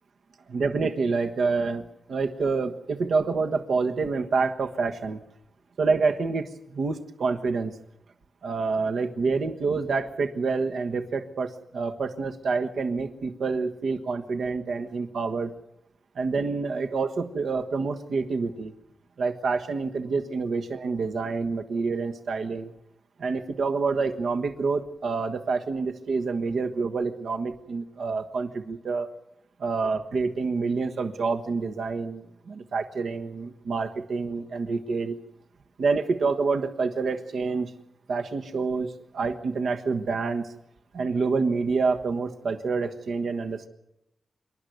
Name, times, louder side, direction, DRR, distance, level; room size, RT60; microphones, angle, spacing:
voice 1, 0.5-5.2 5.8-7.7 8.4-15.5 16.1-18.7 19.2-22.7 23.2-29.1 29.6-35.1 35.8-37.7 38.1-40.5 40.9-43.7, right 4 dB, 75° right, 5 dB, 1.4 m, -27 dB
26.5 x 12.0 x 9.3 m, 0.85 s
wide cardioid pair, 90°, 0 cm